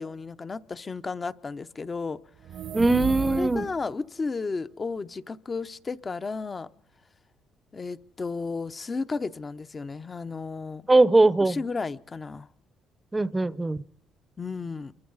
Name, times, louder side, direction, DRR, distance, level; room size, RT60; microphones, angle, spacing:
voice 1, 0.0-2.2 3.3-6.7 7.7-10.9 11.4-12.5 14.4-14.9, left 4 dB, 30° left, 12 dB, 0.8 m, -33 dB
sound 1, 2.4-3.9, right 9 dB, 70° right, 1.1 m, -34 dB
voice 2, 2.7-3.6 10.9-11.6 13.1-13.8, right 2 dB, 15° right, 18 dB, 0.8 m, -20 dB
28.5 x 23.0 x 4.1 m, 0.78 s
cardioid pair, 85°, 0 cm